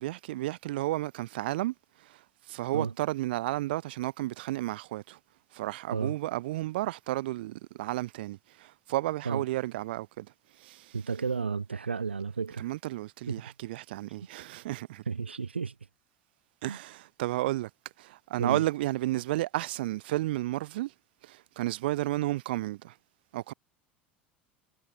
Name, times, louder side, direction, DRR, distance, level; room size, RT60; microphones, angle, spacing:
voice 1, 0.0-5.2 5.5-11.0 12.6-15.0 16.6-17.7 18.0-20.9 21.2-23.0 23.3-23.5, right 17 dB, 65° right, 2.7 m, -32 dB
voice 2, 10.9-12.7 15.1-15.7 16.7-16.8 18.4-18.6, right 5 dB, 85° right, 2.1 m, -32 dB
figure-of-eight pair, 70°, 6 cm